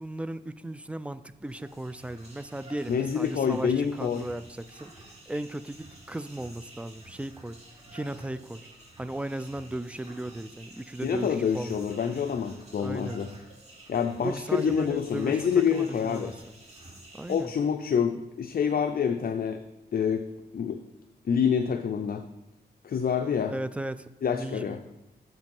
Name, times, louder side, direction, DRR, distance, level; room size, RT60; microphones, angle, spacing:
voice 1, 0.0-7.6 7.9-8.7 9.0-11.9 12.8-13.2 14.2-15.4 15.7-16.3 17.1-17.5 23.5-24.6, right 1 dB, 5° right, 13 dB, 0.4 m, -36 dB
sound 1, 1.4-17.4, right 1 dB, 40° right, 3.0 m, -51 dB
voice 2, 2.9-4.3 11.0-13.3 13.9-16.3 17.3-19.6 19.9-20.2 20.5-20.8 21.3-22.2 22.8-23.5 24.2-24.8, left 7 dB, 60° left, 6 dB, 0.5 m, -27 dB
7.5 x 5.3 x 5.4 m, 0.93 s
cardioid pair, 75°, 17 cm